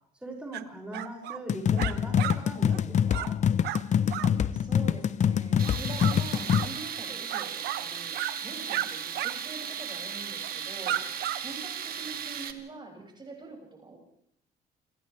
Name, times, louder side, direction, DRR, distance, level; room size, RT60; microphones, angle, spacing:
voice 1, 0.2-3.4, right 2 dB, 5° right, -2 dB, 6.9 m, -40 dB
sound 1, 0.5-0.6 0.9-1.4 1.8-2.4 2.7-2.8 3.1-3.3 3.6-3.8 4.1-4.3 5.6-6.2 6.5-6.7 7.3-7.8 8.1-8.3 8.7-8.9 9.1-9.3 9.6-9.8 10.4-10.6 10.8-11.4, right 13 dB, 75° right, 1.2 m, -33 dB
sound 2, 1.5-6.6, left 8 dB, 45° left, 0.8 m, -25 dB
voice 2, 4.1-8.2 8.4-14.0, right 3 dB, 25° right, 0 dB, 6.8 m, -44 dB
Tools, 5.6-12.5, right 8 dB, 60° right, 2.1 m, -36 dB
30.0 x 26.0 x 3.5 m, 0.72 s
cardioid pair, 110°, 17 cm